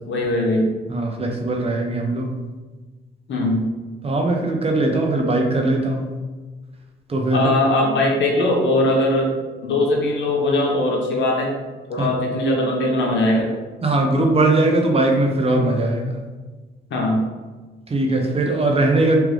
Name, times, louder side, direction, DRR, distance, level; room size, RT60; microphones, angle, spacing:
voice 1, 0.1-0.7 3.3-3.6 7.3-9.3 9.6-11.5 11.9-13.5 16.9-17.2, left 1 dB, 70° left, -1 dB, 1.0 m, -20 dB
voice 2, 0.9-2.4 4.0-6.1 7.1-7.5 12.0-12.1 13.8-16.2 17.9-19.2, right 2 dB, 30° right, 2 dB, 0.6 m, -20 dB
3.6 x 3.1 x 3.2 m, 1.3 s
cardioid pair, 90°, 20 cm